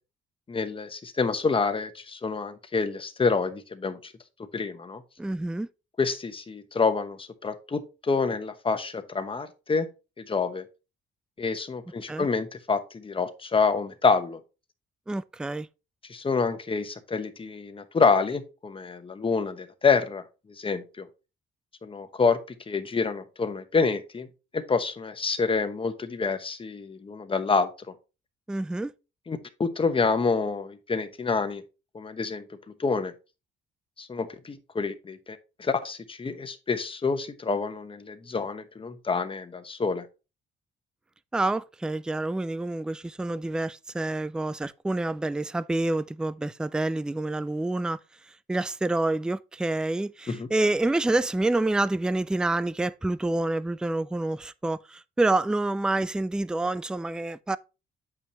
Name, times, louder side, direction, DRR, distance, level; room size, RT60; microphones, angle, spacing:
voice 1, 0.5-4.1 4.5-5.0 6.0-9.9 10.2-10.6 11.4-14.4 16.1-21.1 21.8-22.4 22.7-24.3 24.5-27.7 29.3-31.6 31.9-32.5 32.8-33.1 34.0-40.1 50.3-50.5, left 4 dB, 25° left, 1.1 m, -27 dB
voice 2, 5.2-5.7 12.1-12.3 15.1-15.7 28.5-28.9 41.3-48.0 48.5-57.6, right 2 dB, 5° right, 0.3 m, -27 dB
8.3 x 5.5 x 2.9 m
cardioid pair, 90°, 20 cm